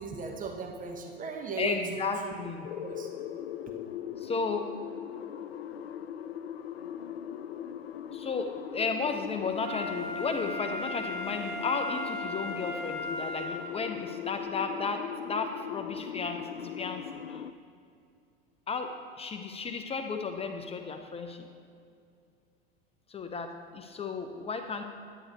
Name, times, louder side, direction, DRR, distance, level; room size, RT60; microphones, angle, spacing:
voice 1, 0.0-1.8 2.2-2.3 2.8-3.1, right 4 dB, 25° right, 2 dB, 1.1 m, -37 dB
voice 2, 1.6-2.7 4.2-4.7 8.1-16.5 16.8-17.4 18.7-21.5 23.1-24.8, left 4 dB, 20° left, 6 dB, 0.7 m, -34 dB
sound 1, 2.6-17.5, left 9 dB, 85° left, 0.5 m, -40 dB
Wind instrument woodwind instrument, 9.6-13.9 14.4-14.5, left 1 dB, 50° right, 2.1 m, -37 dB
10.0 x 9.5 x 4.0 m, 2.4 s
hypercardioid pair, 90°, 30 cm